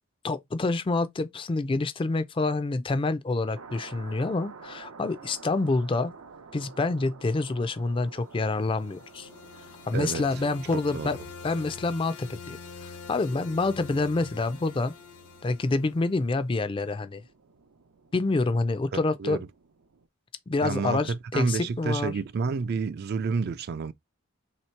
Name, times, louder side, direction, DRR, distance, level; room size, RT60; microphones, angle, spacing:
voice 1, 0.2-6.1 6.5-9.3 9.9-11.2 11.4-12.6 12.8-14.9 15.4-17.2 18.1-19.4 20.5-22.1, left 3 dB, 25° left, 0.4 m, -27 dB
sound 1, 3.5-20.1, right 4 dB, 90° right, 0.7 m, -51 dB
sound 2, 8.2-16.4, left 5 dB, 85° left, 1.2 m, -46 dB
voice 2, 9.9-10.2 10.7-11.1 18.9-19.4 20.6-23.9, right 4 dB, 50° right, 0.3 m, -30 dB
3.1 x 2.9 x 4.4 m
head